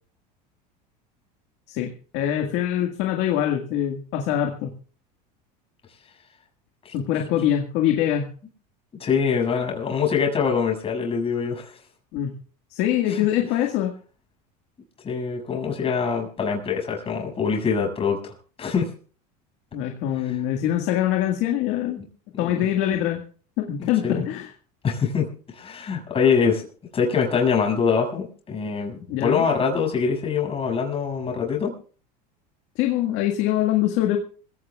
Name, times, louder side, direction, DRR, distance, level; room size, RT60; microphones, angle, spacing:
voice 1, 1.7-4.7 6.9-8.3 12.1-12.3 12.7-13.9 19.7-22.0 22.4-23.3 23.6-24.5 29.1-29.5 32.8-34.2, left 11 dB, 60° left, 3 dB, 1.9 m, -24 dB
voice 2, 9.0-11.8 13.1-13.2 15.0-18.3 18.6-18.9 20.2-20.4 22.0-22.1 22.3-22.7 23.8-24.3 24.8-26.6 26.9-31.7, left 6 dB, 30° left, 1 dB, 6.7 m, -24 dB
26.0 x 16.5 x 2.4 m, 0.41 s
supercardioid pair, 115°, 20 cm